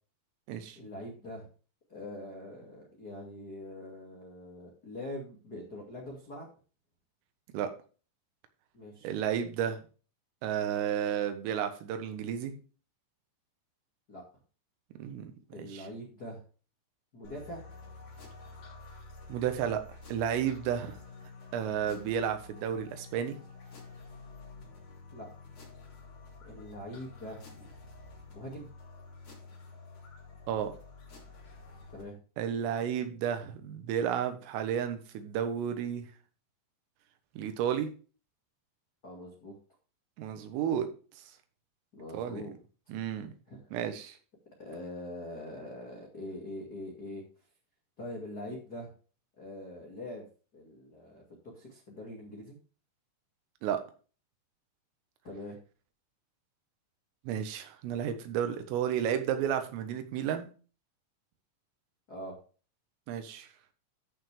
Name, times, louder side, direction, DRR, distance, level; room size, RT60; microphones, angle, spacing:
voice 1, 0.7-1.5 1.9-6.5 8.7-9.1 14.1-14.2 15.5-16.4 17.1-17.6 25.1-25.3 26.4-27.4 28.3-28.7 31.9-32.2 39.0-39.5 41.9-42.6 42.9-43.0 43.5-43.8 44.6-47.2 48.0-48.9 49.4-50.2 50.5-52.6 55.2-55.6 62.1-62.4, left 1 dB, 90° left, -2 dB, 0.8 m, -43 dB
voice 2, 9.0-9.8 10.4-12.6 15.0-15.3 15.6-15.9 19.3-19.8 20.1-21.0 21.5-23.4 30.5-30.7 32.4-36.0 37.4-37.9 40.2-40.9 42.1-42.4 42.9-43.3 43.7-44.2 53.6-53.8 57.3-60.5 63.1-63.5, right 9 dB, 85° right, 8 dB, 3.9 m, -32 dB
sound 1, 17.2-32.0, left 3 dB, 30° left, 2.9 m, -50 dB
14.0 x 6.0 x 3.3 m, 0.37 s
omnidirectional pair, 5.8 m